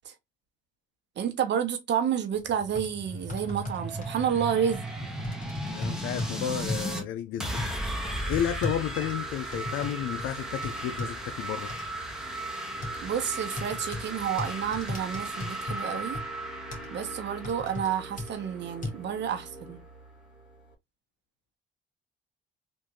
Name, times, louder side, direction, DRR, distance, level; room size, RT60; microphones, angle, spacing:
voice 1, 1.2-4.9 13.0-16.2 16.9-19.8, right 8 dB, 60° right, 1.0 m, -30 dB
sound 1, 2.3-2.4 2.7-2.9 3.3-4.1 4.7-4.9 5.2-6.3 6.7-6.9 7.6-7.7 8.3-9.9 10.2-10.3 10.6-11.1 11.7-11.8 12.8-13.0 13.6-14.0 14.4-15.8 16.1-16.2 16.7-16.9 17.4-17.9 18.2-18.3 18.8-18.9, left 2 dB, 40° left, 1.5 m, -35 dB
sound 2, 2.4-7.0 7.4-19.0, right 1 dB, 5° right, 1.0 m, -36 dB
voice 2, 5.7-7.7 8.3-11.7, left 10 dB, 85° left, 0.4 m, -32 dB
sound 3, 8.8-20.7, right 1 dB, 65° left, 1.7 m, -48 dB
3.5 x 2.6 x 3.0 m
cardioid pair, 90°, 20 cm